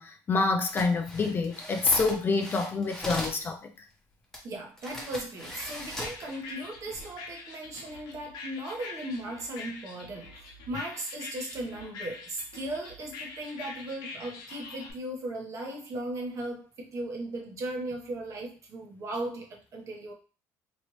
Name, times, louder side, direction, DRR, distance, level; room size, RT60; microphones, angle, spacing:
voice 1, 0.0-3.7, left 3 dB, 30° left, 0.4 m, -27 dB
sound 1, 0.6-3.4 4.3-4.4 4.8-6.2 6.8-7.0, left 1 dB, 10° left, 1.1 m, -39 dB
voice 2, 4.4-20.1, right 1 dB, 45° right, 1.0 m, -37 dB
sound 2, 5.4-14.9, left 4 dB, 65° left, 0.8 m, -45 dB
3.1 x 2.5 x 3.0 m
cardioid pair, 115°, 7 cm